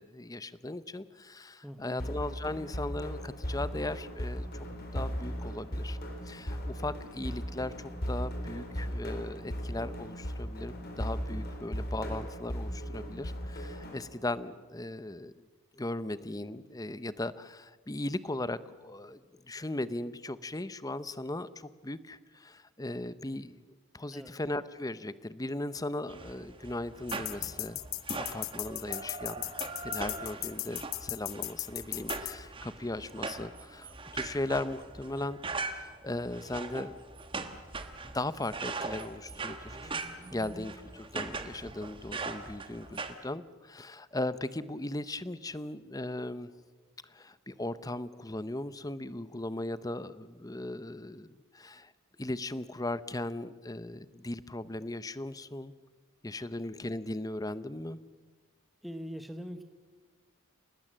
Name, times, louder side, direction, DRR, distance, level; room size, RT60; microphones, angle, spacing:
voice 1, 0.0-4.5 4.9-6.0 6.3-15.3 15.7-23.6 23.9-27.8 28.1-29.4 29.8-37.0 38.1-39.9 40.3-46.5 47.0-51.9 52.2-55.7 56.2-58.0, left 1 dB, 15° left, 15 dB, 0.7 m, -38 dB
voice 2, 1.6-2.1 24.1-24.4 58.8-59.6, equal, ahead, 6 dB, 1.1 m, -42 dB
sound 1, 2.0-14.0, equal, 45° left, 4.0 m, -37 dB
sound 2, 26.1-43.1, right 3 dB, 25° right, 1.4 m, -41 dB
sound 3, 27.1-32.3, left 18 dB, 75° left, 0.9 m, -36 dB
30.0 x 19.0 x 7.5 m, 1.3 s
head